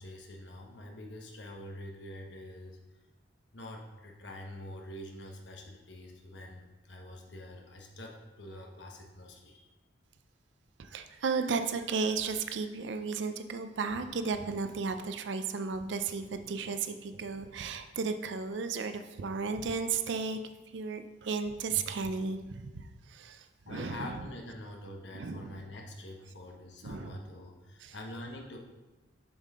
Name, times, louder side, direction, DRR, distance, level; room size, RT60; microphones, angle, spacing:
voice 1, 0.0-2.8 3.5-9.7 23.6-28.6, left 1 dB, 70° left, 1 dB, 1.1 m, -45 dB
voice 2, 10.8-20.4 20.7-24.1 25.1-25.6 26.8-27.1 27.8-27.9, right 5 dB, 70° right, 8 dB, 0.4 m, -34 dB
6.9 x 5.6 x 3.7 m, 1.1 s
head